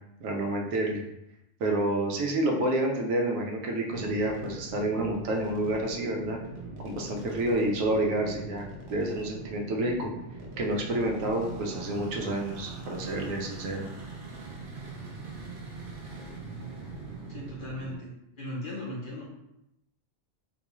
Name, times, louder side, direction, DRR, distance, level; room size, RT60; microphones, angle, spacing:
voice 1, 0.2-1.0 1.6-6.4 6.8-10.1 10.6-13.9, right 1 dB, 85° right, 1 dB, 1.0 m, -29 dB
sound 1, 3.9-18.0, right 3 dB, 50° right, 0.7 m, -42 dB
voice 2, 17.3-18.1 18.4-19.2, left 1 dB, 50° left, -5 dB, 0.7 m, -37 dB
3.9 x 2.3 x 2.9 m, 0.84 s
omnidirectional pair, 1.4 m